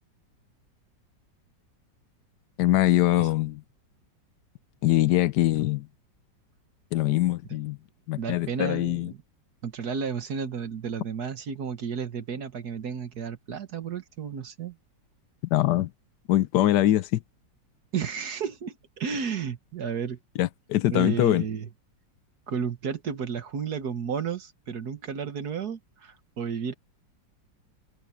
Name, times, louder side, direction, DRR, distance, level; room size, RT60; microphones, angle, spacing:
voice 1, 2.6-3.6 4.8-5.9 6.9-7.8 8.1-9.1 15.5-15.9 16.3-17.2 20.4-21.4, left 14 dB, 70° left, 1.2 m, -23 dB
voice 2, 8.2-9.2 9.6-14.8 17.9-20.2 20.9-21.7 22.5-26.7, right 6 dB, 60° right, 1.7 m, -32 dB
open air
omnidirectional pair, 2.0 m